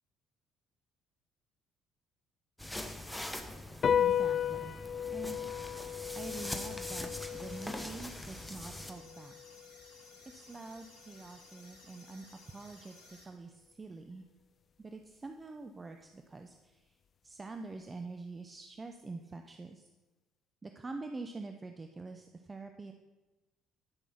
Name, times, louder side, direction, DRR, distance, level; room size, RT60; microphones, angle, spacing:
sound 1, 2.6-8.9, left 1 dB, 5° left, 1.2 m, -43 dB
sound 2, 3.8-10.5, left 9 dB, 45° left, 0.4 m, -35 dB
voice 1, 3.9-4.7 5.1-5.5 6.1-9.3 10.3-14.3 14.8-16.8 17.2-19.8 20.6-22.9, right 3 dB, 25° right, 6 dB, 0.8 m, -46 dB
sound 3, 6.2-13.2, left 2 dB, 90° left, 3.3 m, -57 dB
12.0 x 6.2 x 5.9 m, 1.2 s
hypercardioid pair, 55°, 0 cm